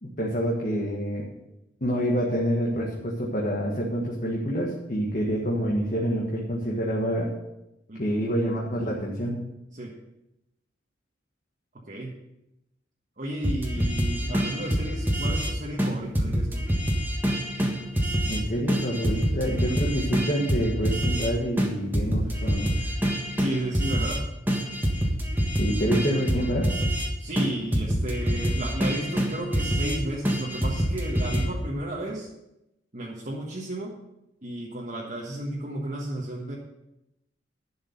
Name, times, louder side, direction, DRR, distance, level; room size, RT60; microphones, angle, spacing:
voice 1, 0.0-1.3 1.8-7.3 8.0-9.4 13.7-13.8 14.2-14.4 18.2-22.9 25.6-26.7, equal, 45° left, -3 dB, 1.6 m, -27 dB
voice 2, 7.9-8.2 9.7-9.9 11.9-12.1 13.2-16.7 23.4-24.2 27.2-32.3 32.9-34.0 34.4-36.6, right 1 dB, 45° right, -3 dB, 1.5 m, -33 dB
sound 1, 13.4-15.5 15.8-15.9 16.1-18.4 18.7-21.3 21.6-24.2 24.5-27.1 27.4-27.5 27.7-30.0 30.2-31.4, equal, 10° right, 1.5 m, -26 dB
11.5 x 6.4 x 6.7 m, 0.91 s
head